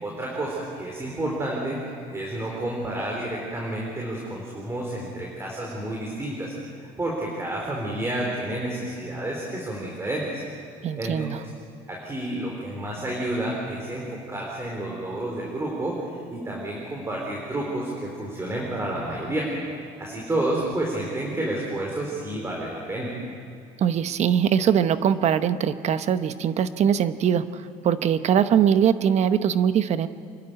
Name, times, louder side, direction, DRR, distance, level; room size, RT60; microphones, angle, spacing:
voice 1, 0.0-1.8 2.1-6.5 7.0-10.4 11.0-11.3 11.9-19.5 20.0-23.1, right 1 dB, 20° right, -2 dB, 4.1 m, -30 dB
voice 2, 10.8-11.4 23.8-30.1, right 8 dB, 50° right, 12 dB, 1.0 m, -22 dB
27.5 x 12.0 x 9.2 m, 2.3 s
cardioid pair, 120°, 15 cm